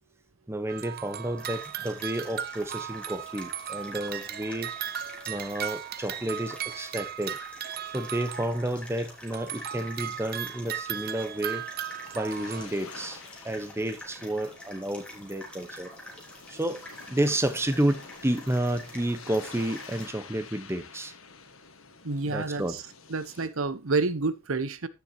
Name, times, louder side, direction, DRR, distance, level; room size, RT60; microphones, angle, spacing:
voice 1, 0.5-4.7 5.3-7.4 7.9-11.6 12.1-15.9 16.5-16.8 17.1-21.1 22.3-22.8, right 1 dB, 15° right, 1.0 m, -31 dB
sound 1, 0.7-8.9 9.3-12.7, right 10 dB, 50° right, 0.6 m, -37 dB
sound 2, 1.4-20.0, left 1 dB, 5° left, 3.4 m, -47 dB
sound 3, 11.3-23.5, left 5 dB, 80° left, 1.5 m, -49 dB
voice 2, 22.0-22.6 23.1-24.9, right 3 dB, 85° right, 0.9 m, -28 dB
16.0 x 7.0 x 2.9 m
head